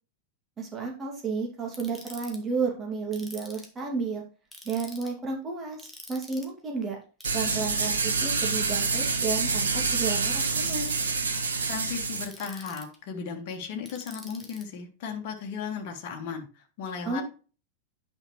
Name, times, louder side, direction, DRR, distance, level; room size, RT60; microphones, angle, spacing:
voice 1, 0.6-4.2 4.6-7.0 7.3-10.9 17.0-17.2, right 4 dB, 20° right, 0 dB, 2.4 m, -32 dB
Ratchet pawl, 1.7-2.4 3.1-3.8 4.5-5.1 5.8-6.5 7.2-7.7 8.7-9.3 10.4-11.1 12.1-13.0 13.9-14.6, left 1 dB, 5° left, 2.0 m, -46 dB
sound 1, 7.2-12.2, right 4 dB, 70° right, 1.3 m, -27 dB
voice 2, 11.7-17.2, left 6 dB, 45° left, 3 dB, 1.6 m, -36 dB
9.8 x 5.8 x 3.2 m, 0.36 s
figure-of-eight pair, 90°, 0 cm